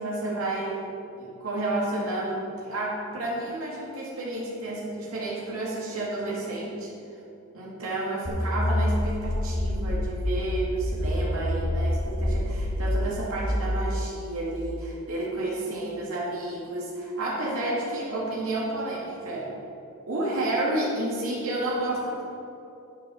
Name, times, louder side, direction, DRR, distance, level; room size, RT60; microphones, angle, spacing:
voice 1, 0.0-6.9 7.5-19.5 20.1-22.2, right 2 dB, 80° right, -5 dB, 2.4 m, -31 dB
sound 1, 8.2-13.7, left 1 dB, 45° left, 1.8 m, -27 dB
9.5 x 7.6 x 6.4 m, 2.8 s
head